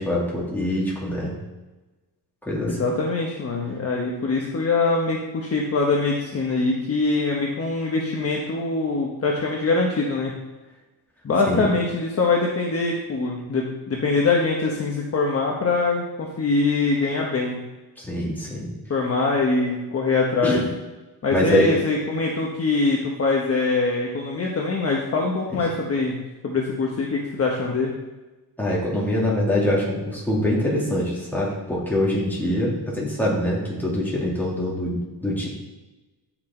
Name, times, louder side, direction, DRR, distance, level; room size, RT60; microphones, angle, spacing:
voice 1, 0.0-1.4 2.5-2.9 11.5-11.7 18.0-18.7 20.4-20.6 21.3-21.8 25.5-25.6 28.6-35.5, left 1 dB, 5° left, -5 dB, 2.6 m, -24 dB
voice 2, 2.6-10.3 11.2-17.6 18.9-20.6 21.2-26.2 26.4-27.9, left 3 dB, 35° left, -1 dB, 1.1 m, -23 dB
9.6 x 6.1 x 4.4 m, 1.1 s
wide cardioid pair, 155°, 42 cm